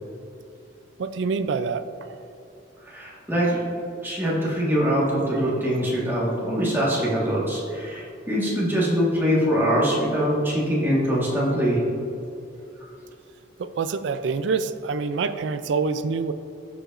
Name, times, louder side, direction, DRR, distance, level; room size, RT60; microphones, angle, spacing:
voice 1, 1.0-2.2 13.6-16.3, right 4 dB, 70° right, 11 dB, 0.4 m, -26 dB
voice 2, 2.8-3.6 4.0-11.8, equal, 10° right, -6 dB, 1.5 m, -23 dB
12.5 x 4.9 x 2.5 m, 2.7 s
head